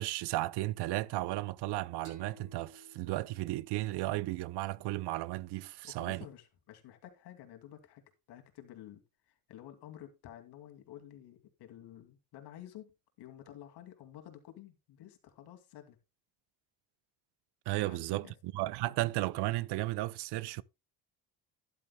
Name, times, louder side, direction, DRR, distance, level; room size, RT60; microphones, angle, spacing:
voice 1, 0.0-6.3 17.7-20.6, right 18 dB, 80° right, 0.7 m, -34 dB
sound 1, 2.1-5.4, equal, 50° right, 6.0 m, -58 dB
voice 2, 5.8-16.0 17.7-18.3, left 12 dB, 80° left, 2.5 m, -52 dB
12.5 x 10.5 x 2.2 m
cardioid pair, 100°, 39 cm